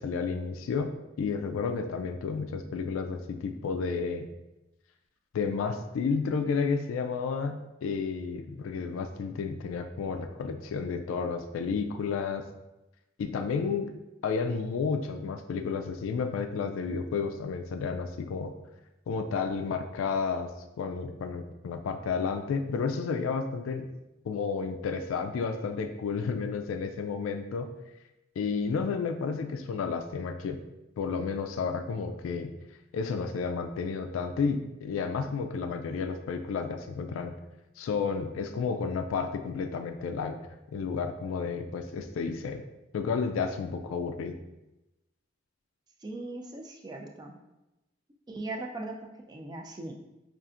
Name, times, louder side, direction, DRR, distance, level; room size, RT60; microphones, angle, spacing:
voice 1, 0.0-4.3 5.3-12.4 13.2-13.9 14.2-18.5 19.1-20.5 20.8-23.9 24.2-27.7 28.4-30.6 31.0-32.5 32.9-37.3 37.8-40.4 40.7-42.6 42.9-44.4, left 5 dB, 80° left, 7 dB, 0.3 m, -31 dB
voice 2, 46.0-47.3 48.3-50.1, right 2 dB, 20° right, 2 dB, 0.3 m, -39 dB
5.5 x 2.4 x 2.4 m, 0.98 s
head